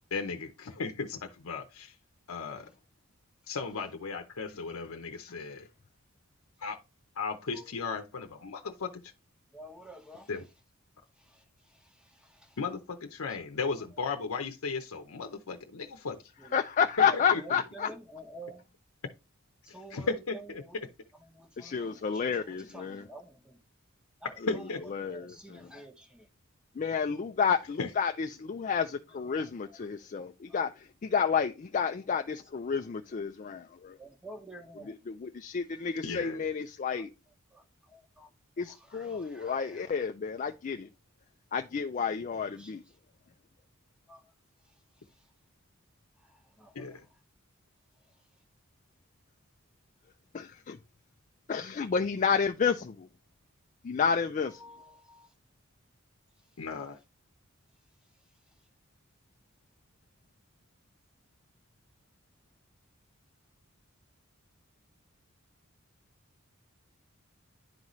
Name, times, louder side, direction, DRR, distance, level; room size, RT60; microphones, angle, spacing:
voice 1, 0.1-1.9 2.3-2.7 3.5-5.7 6.6-6.8 7.2-9.1 10.3-10.4 12.6-16.2 17.3-17.6 19.7-20.9 24.4-24.8 27.8-27.9 36.0-36.5 46.7-47.1 56.6-57.0, left 4 dB, 85° left, 0.7 m, -36 dB
voice 2, 9.5-10.3 11.2-11.4 11.7-12.6 13.3-13.4 16.4-16.5 17.0-18.6 19.7-20.8 21.3-23.6 24.2-24.7 25.1-26.3 29.2-29.8 30.5-30.7 34.0-34.9 36.9-37.0 37.5-38.3 38.6-40.1 42.6-42.7 44.1-44.2 46.2-47.0 54.5-55.3, right 1 dB, 5° right, 1.1 m, -49 dB
voice 3, 16.5-17.9 21.6-23.1 24.9-25.7 26.8-34.0 34.9-37.1 38.6-40.9 41.5-42.8 50.3-50.8 51.5-53.1 53.8-54.6, left 6 dB, 35° left, 0.4 m, -30 dB
10.5 x 4.0 x 3.0 m
head